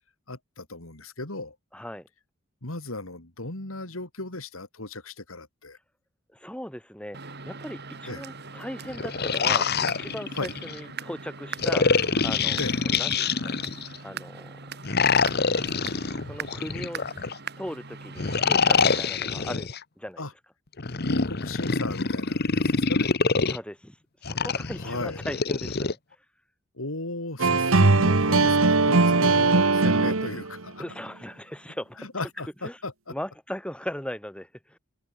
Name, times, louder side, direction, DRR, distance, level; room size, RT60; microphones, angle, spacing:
voice 1, 0.3-1.6 2.6-5.8 8.1-8.2 10.3-10.5 12.6-12.9 20.2-20.3 21.0-23.2 24.8-25.2 26.8-30.8 32.0-33.1, left 2 dB, 85° left, 3.8 m, -36 dB
voice 2, 1.7-2.1 6.3-11.9 12.2-13.5 14.0-14.6 16.3-17.0 17.6-19.7 20.0-20.2 23.5-24.0 24.2-26.0 30.8-32.1 32.6-32.8 33.1-34.8, equal, 5° left, 4.3 m, -38 dB
sound 1, 7.1-19.0, right 5 dB, 50° right, 4.9 m, -41 dB
sound 2, 8.8-10.8 11.6-14.0 14.8-17.4 18.2-19.8 20.8-23.6 24.2-25.9, left 5 dB, 50° left, 1.2 m, -25 dB
sound 3, 27.4-30.6, right 3 dB, 80° right, 1.4 m, -20 dB
open air
head